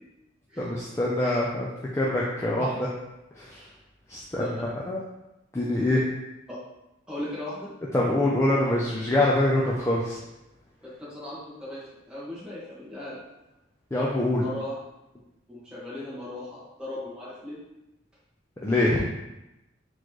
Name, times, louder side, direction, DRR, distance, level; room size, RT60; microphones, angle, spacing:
voice 1, 0.6-1.7 2.0-2.9 3.4-3.6 4.1-5.0 5.5-6.0 7.9-10.2 13.9-14.4 18.6-19.0, left 1 dB, 15° left, -5 dB, 0.4 m, -24 dB
voice 2, 7.1-7.7 11.0-13.2 14.4-14.8 15.5-17.6, left 1 dB, 5° right, -10 dB, 1.4 m, -37 dB
4.2 x 3.0 x 3.0 m, 0.96 s
head